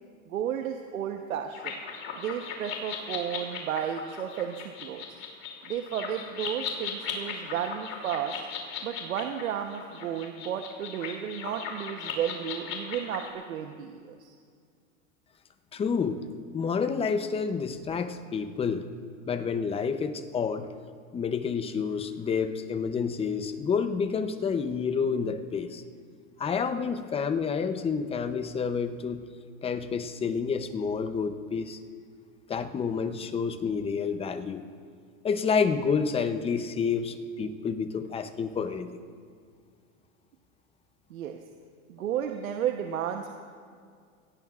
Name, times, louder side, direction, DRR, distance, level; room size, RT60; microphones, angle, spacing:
voice 1, 0.3-1.7 2.1-5.0 5.7-8.3 8.8-14.3 41.1-41.4 41.9-43.3, right 9 dB, 90° right, 4 dB, 1.1 m, -33 dB
sound 1, 1.5-13.3, left 6 dB, 35° left, 2.9 m, -38 dB
voice 2, 15.7-16.2 16.5-18.9 19.3-20.7 21.1-25.8 26.4-29.2 29.6-31.8 32.5-34.6 35.2-38.9, left 6 dB, 15° left, 9 dB, 0.7 m, -29 dB
23.0 x 17.0 x 2.5 m, 2.1 s
supercardioid pair, 130°, 40 cm